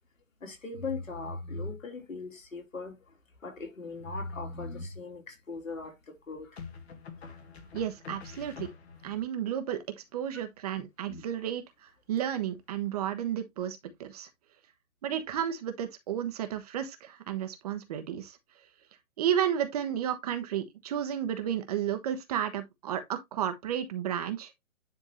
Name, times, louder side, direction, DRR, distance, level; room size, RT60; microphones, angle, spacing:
voice 1, 0.4-3.0 3.4-6.6 7.2-7.4 10.7-11.2, left 3 dB, 75° left, 3.1 m, -39 dB
sound 1, 3.9-4.5 6.6-9.2, left 5 dB, 50° left, 1.8 m, -46 dB
voice 2, 7.7-8.7 9.0-9.8 10.1-11.6 12.1-14.3 15.0-18.4 19.2-24.5, right 10 dB, 30° right, 1.0 m, -32 dB
10.0 x 3.7 x 3.0 m
figure-of-eight pair, 145°, 40 cm